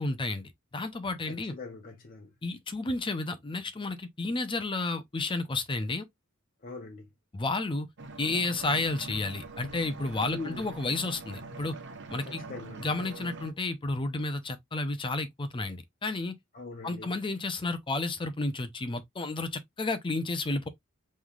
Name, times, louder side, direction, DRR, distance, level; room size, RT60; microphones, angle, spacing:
voice 1, 0.0-1.5 2.4-6.0 7.3-7.9 8.2-11.7 12.1-12.4 12.8-16.4 16.8-20.7, left 2 dB, 25° left, 0.6 m, -31 dB
voice 2, 1.2-2.3 6.6-7.1 10.3-10.7 12.3-12.9 16.5-17.1, left 3 dB, 40° left, 0.9 m, -42 dB
sound 1, 8.0-13.5, right 3 dB, 60° right, 0.9 m, -43 dB
5.4 x 3.2 x 2.3 m
head